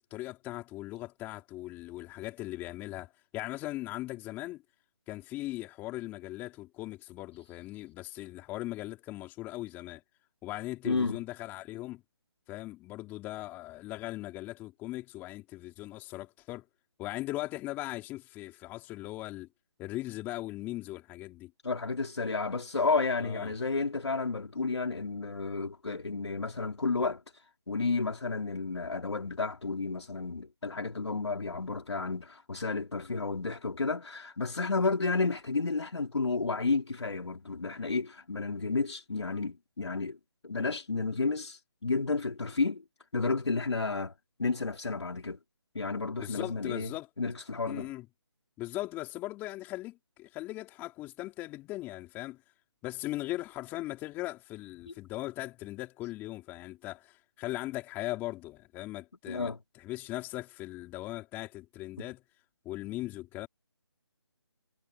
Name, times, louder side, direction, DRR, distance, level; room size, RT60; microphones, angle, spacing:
voice 1, 0.0-4.6 5.1-10.0 10.4-12.0 12.5-16.6 17.0-19.5 19.8-21.5 23.2-23.5 46.2-47.1 47.6-48.1 48.6-52.4 52.8-62.2 62.6-63.5, left 17 dB, 15° left, 4.2 m, -39 dB
voice 2, 10.8-11.2 21.6-27.2 27.7-40.2 40.4-42.8 43.1-44.1 44.4-45.4 45.7-46.9 47.2-47.9 59.3-59.6, left 3 dB, 80° left, 3.2 m, -31 dB
figure-of-eight pair, 160°, 14 cm